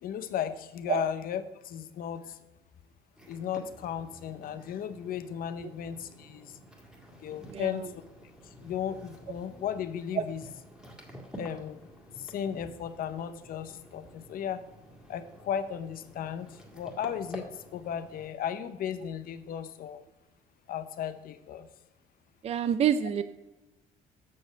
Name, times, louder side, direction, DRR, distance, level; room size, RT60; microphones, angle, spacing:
voice 1, 0.0-2.4 3.3-6.5 7.2-8.0 8.6-10.4 11.4-11.9 12.2-14.6 15.1-16.5 16.7-17.4 17.7-20.0 20.7-21.7, left 9 dB, 60° left, 11 dB, 0.7 m, -35 dB
sound 1, 3.1-18.3, right 1 dB, 5° right, 1.9 m, -50 dB
voice 2, 7.5-7.9 10.2-10.3 22.4-23.2, right 8 dB, 40° right, 11 dB, 0.4 m, -27 dB
7.5 x 6.3 x 5.1 m, 1.1 s
cardioid pair, 110°, 17 cm